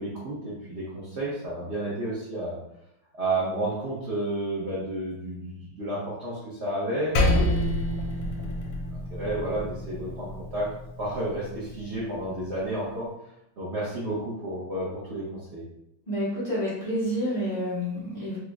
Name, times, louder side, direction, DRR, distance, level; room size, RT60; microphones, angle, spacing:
voice 1, 0.0-2.6 3.1-7.9 8.4-10.7 11.0-13.1 13.6-15.6, right 1 dB, 60° right, -8 dB, 0.7 m, -31 dB
Percussion, 7.2-11.9, left 1 dB, 80° left, 1.4 m, -28 dB
voice 2, 16.1-18.4, equal, 60° left, -10 dB, 0.4 m, -29 dB
3.6 x 2.0 x 3.4 m, 0.81 s
omnidirectional pair, 2.2 m